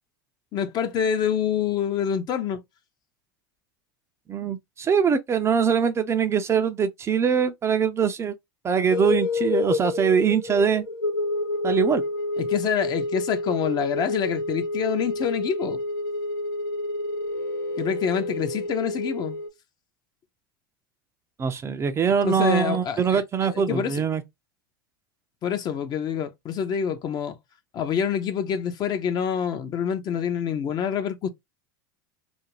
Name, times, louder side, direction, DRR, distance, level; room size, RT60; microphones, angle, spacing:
voice 1, 0.5-2.6 12.4-15.8 17.8-19.4 22.2-23.2 23.5-24.0 25.4-27.4 27.7-31.3, left 8 dB, 40° left, 0.5 m, -26 dB
voice 2, 4.3-8.3 8.6-10.8 11.6-12.0 21.4-24.2, right 7 dB, 25° right, 0.4 m, -23 dB
sound 1, 8.9-19.5, left 2 dB, 80° left, 0.7 m, -29 dB
2.5 x 2.1 x 3.0 m
hypercardioid pair, 90°, 11 cm